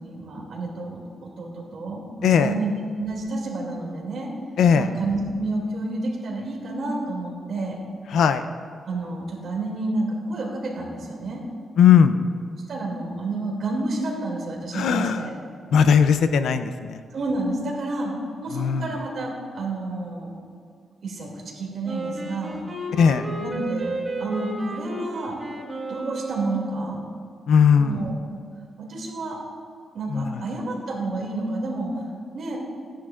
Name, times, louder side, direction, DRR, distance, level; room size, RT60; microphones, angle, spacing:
voice 1, 0.0-2.7 3.0-4.3 4.7-7.8 8.8-11.4 12.7-15.3 17.1-18.1 18.4-20.3 21.0-21.3 21.5-22.6 23.4-23.9 24.2-25.3 25.9-27.0 27.8-28.1 28.8-29.4 29.9-32.0 32.3-32.6, right 2 dB, 50° right, -3 dB, 2.5 m, -29 dB
voice 2, 2.2-2.5 4.6-4.9 8.1-8.4 11.8-12.2 14.7-15.2 15.7-17.0 18.5-18.9 23.0-23.2 27.5-28.0 30.1-30.2, left 7 dB, 80° left, 10 dB, 0.5 m, -18 dB
Wind instrument woodwind instrument, 21.8-26.9, right 1 dB, 25° right, 1.3 m, -33 dB
15.5 x 10.0 x 2.5 m, 2.2 s
wide cardioid pair, 170°, 0 cm